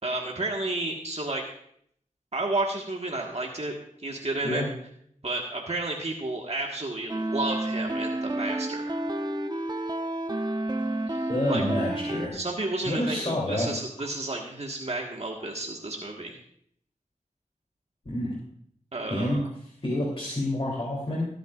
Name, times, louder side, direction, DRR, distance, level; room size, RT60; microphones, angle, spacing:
voice 1, 0.0-1.4 2.3-3.7 4.0-4.6 5.2-9.0 11.1-11.6 12.3-16.4 18.9-19.5, right 2 dB, 50° right, -1 dB, 1.5 m, -31 dB
sound 1, 7.1-12.3, right 1 dB, 30° right, 0.8 m, -30 dB
voice 2, 11.3-12.3 12.8-13.7 18.0-18.3 19.1-19.4 19.8-21.3, left 1 dB, 45° left, -4 dB, 3.1 m, -28 dB
21.0 x 9.1 x 2.5 m, 0.66 s
wide cardioid pair, 50°, 14 cm